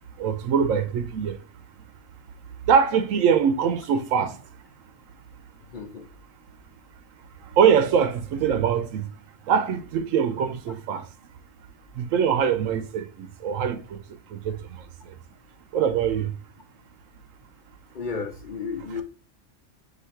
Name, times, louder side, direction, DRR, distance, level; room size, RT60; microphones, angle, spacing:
voice 1, 0.2-1.4 2.7-4.4 7.6-9.1 9.5-11.0 12.0-14.0 14.3-14.8 15.7-16.3 18.9-19.0, right 7 dB, 90° right, 1.0 m, -23 dB
voice 2, 5.7-6.1 17.9-19.0, left 5 dB, 50° left, 0.6 m, -33 dB
4.0 x 2.8 x 4.3 m
omnidirectional pair, 1.3 m